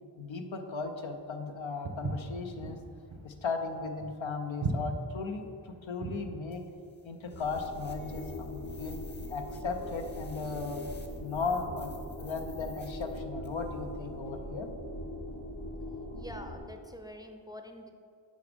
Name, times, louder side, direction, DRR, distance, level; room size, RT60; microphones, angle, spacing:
voice 1, 0.2-2.8 3.2-6.6 7.0-9.0 9.3-10.8 11.2-14.7, left 4 dB, 75° left, 5 dB, 0.7 m, -36 dB
Walk footsteps, 1.8-6.3, right 3 dB, 80° right, 1.2 m, -37 dB
sound 1, 6.5-13.7, left 2 dB, 20° left, 0.8 m, -56 dB
sound 2, 7.2-16.6, left 1 dB, 60° left, 1.6 m, -41 dB
voice 2, 16.1-17.9, left 1 dB, 10° right, 5 dB, 0.5 m, -46 dB
6.4 x 5.1 x 5.1 m, 2.4 s
wide cardioid pair, 50°, 46 cm